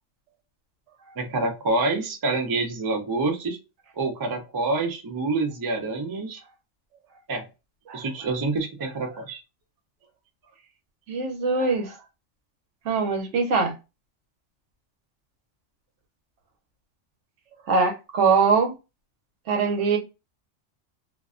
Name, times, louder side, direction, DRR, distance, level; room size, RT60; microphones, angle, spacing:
voice 1, 1.2-3.6 4.0-6.4 7.3-7.5 7.9-9.4, right 3 dB, 35° right, 0.3 m, -27 dB
voice 2, 11.1-12.0 12.9-13.7 17.7-18.7 19.5-20.0, right 4 dB, 75° right, 1.0 m, -22 dB
2.5 x 2.2 x 2.4 m
omnidirectional pair, 1.3 m